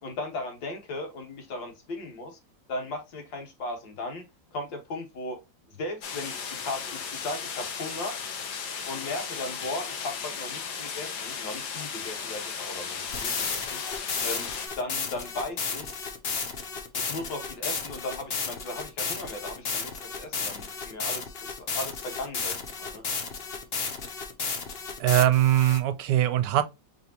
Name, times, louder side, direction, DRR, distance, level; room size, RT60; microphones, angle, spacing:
voice 1, 0.0-2.4 2.7-4.2 4.5-5.4 5.7-8.1 8.9-13.8 14.2-14.5 14.8-16.0 17.0-23.0, left 2 dB, 80° left, 2.1 m, -37 dB
sound 1, 6.0-14.7, left 6 dB, 65° left, 1.4 m, -36 dB
sound 2, 13.1-25.8, left 5 dB, 50° left, 0.7 m, -33 dB
voice 2, 25.0-26.6, right 13 dB, 75° right, 1.1 m, -21 dB
5.0 x 3.5 x 2.8 m
omnidirectional pair, 2.0 m